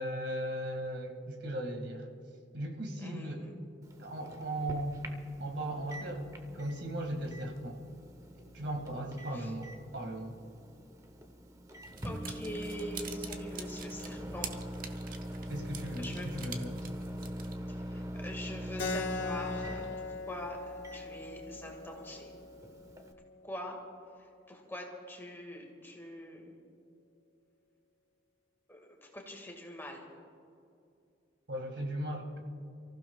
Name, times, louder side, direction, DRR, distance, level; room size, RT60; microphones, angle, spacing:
voice 1, 0.0-2.1 2.5-3.5 4.0-5.0 5.4-6.3 6.5-7.8 8.4-10.3 15.5-16.8 31.5-32.3, right 1 dB, 70° right, 3 dB, 2.0 m, -37 dB
voice 2, 3.0-3.5 9.3-9.5 12.0-14.5 16.0-16.3 17.7-19.8 20.3-20.6 20.9-22.3 23.4-23.8 24.5-26.5 28.7-30.0, left 1 dB, 10° left, 1 dB, 1.8 m, -44 dB
Microwave oven, 3.8-23.1, equal, 20° right, 0.8 m, -43 dB
sound 1, 11.8-17.6, right 6 dB, 45° right, 1.0 m, -47 dB
Keyboard (musical), 18.8-23.9, left 3 dB, 85° left, 1.2 m, -40 dB
29.0 x 15.0 x 2.4 m, 2.5 s
head